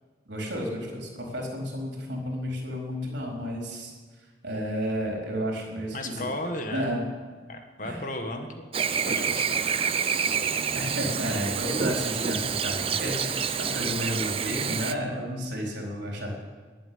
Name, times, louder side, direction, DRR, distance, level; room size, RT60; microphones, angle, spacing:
voice 1, 0.3-3.9 4.4-6.3 6.7-7.1 7.8-8.0 10.7-16.3, equal, 70° right, -1 dB, 4.3 m, -32 dB
voice 2, 5.9-7.0 7.5-8.7 9.1-9.6, left 1 dB, 45° left, 5 dB, 1.6 m, -34 dB
Chirp tweet / Buzz, 8.7-14.9, right 6 dB, 30° right, 0.6 m, -28 dB
20.0 x 7.4 x 9.6 m, 1.4 s
head